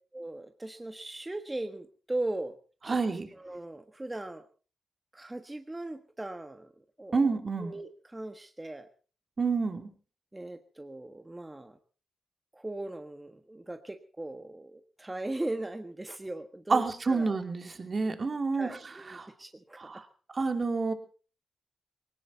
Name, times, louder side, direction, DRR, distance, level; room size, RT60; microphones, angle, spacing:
voice 1, 0.1-2.6 2.8-4.4 5.1-6.7 7.0-7.3 7.6-8.9 10.3-11.8 12.5-17.4 18.5-19.9, right 2 dB, 20° right, 8 dB, 1.4 m, -39 dB
voice 2, 2.9-3.3 7.1-7.7 9.4-9.9 16.7-19.3 19.8-20.0 20.3-20.9, right 4 dB, 45° right, 7 dB, 2.8 m, -29 dB
19.5 x 18.0 x 4.1 m, 0.38 s
cardioid pair, 55°, 0 cm